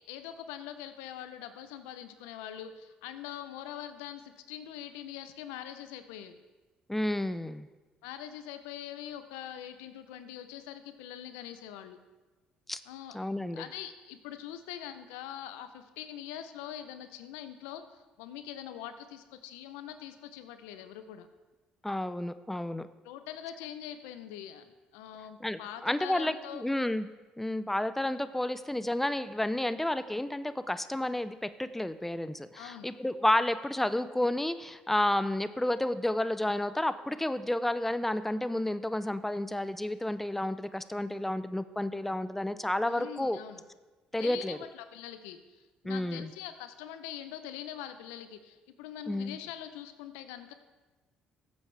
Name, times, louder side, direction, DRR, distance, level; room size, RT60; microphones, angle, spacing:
voice 1, 0.1-6.3 8.0-12.0 12.9-13.2 13.5-21.3 23.0-26.7 32.6-32.9 42.9-43.6 44.2-50.5, left 10 dB, 85° left, 10 dB, 0.7 m, -43 dB
voice 2, 6.9-7.7 12.7-12.8 13.1-13.6 21.8-22.9 25.4-27.1 27.4-43.4 44.1-44.6 45.8-46.3 49.1-49.4, left 1 dB, 5° left, 13 dB, 0.5 m, -31 dB
14.5 x 8.0 x 3.4 m, 1.2 s
supercardioid pair, 65°, 3 cm